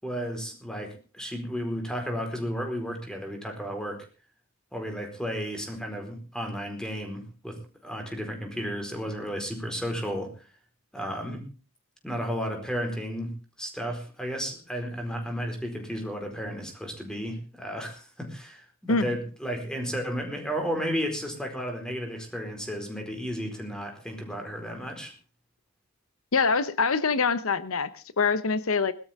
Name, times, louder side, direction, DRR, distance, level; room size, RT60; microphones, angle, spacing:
voice 1, 0.0-4.1 4.7-10.3 10.9-11.4 12.0-25.1, equal, 5° left, 4 dB, 4.5 m, -33 dB
voice 2, 26.3-28.9, left 4 dB, 80° left, 14 dB, 0.9 m, -25 dB
21.0 x 13.0 x 3.6 m, 0.34 s
head